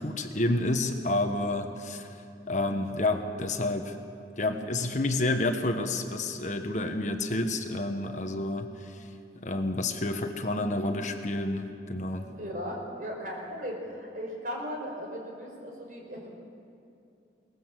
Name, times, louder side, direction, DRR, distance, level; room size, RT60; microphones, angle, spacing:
voice 1, 0.0-2.2 2.5-4.0 4.4-9.1 9.4-12.3, left 2 dB, 40° left, 5 dB, 1.3 m, -29 dB
voice 2, 12.3-16.4, equal, 50° right, 0 dB, 5.3 m, -37 dB
22.0 x 19.5 x 7.6 m, 2.6 s
head